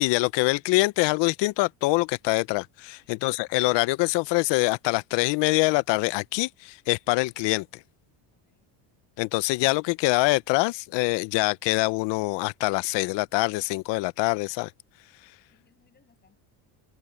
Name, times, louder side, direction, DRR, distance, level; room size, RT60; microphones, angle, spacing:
voice 1, 0.0-7.7 9.2-14.7, left 23 dB, 60° left, 0.6 m, -24 dB
voice 2, 8.3-8.7 15.5-16.4, left 5 dB, 20° left, 7.5 m, -66 dB
cardioid pair, 155°, 48 cm